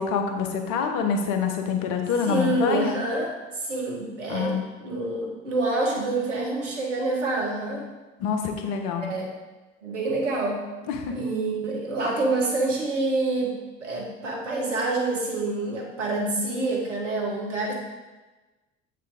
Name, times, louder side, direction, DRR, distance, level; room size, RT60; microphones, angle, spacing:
voice 1, 0.0-2.9 4.3-4.6 8.2-9.0 10.9-11.1, left 6 dB, 60° left, 4 dB, 1.2 m, -26 dB
voice 2, 2.3-3.3 3.6-7.8 8.9-9.3 9.8-10.6 11.1-13.5 13.8-17.7, right 2 dB, 85° right, -1 dB, 1.4 m, -27 dB
7.6 x 5.7 x 3.6 m, 1.2 s
hypercardioid pair, 60°, 36 cm